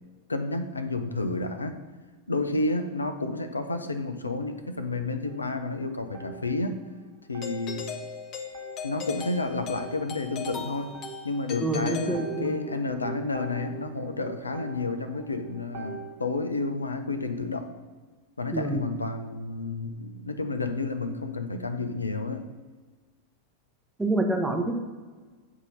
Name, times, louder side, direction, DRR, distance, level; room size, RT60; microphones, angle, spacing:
voice 1, 0.3-1.8 2.3-6.8 7.3-7.9 8.8-17.7 18.4-22.5, left 3 dB, 80° left, 8 dB, 0.4 m, -31 dB
sound 1, 5.2-7.0 7.3-16.4, right 6 dB, 45° right, 0.7 m, -44 dB
Doorbell, 7.4-12.8, left 6 dB, 35° left, 0.6 m, -38 dB
voice 2, 11.6-12.6 18.5-18.9 24.0-24.8, right 2 dB, 10° right, 3 dB, 0.7 m, -27 dB
7.8 x 2.7 x 5.4 m, 1.4 s
figure-of-eight pair, 90°, 0 cm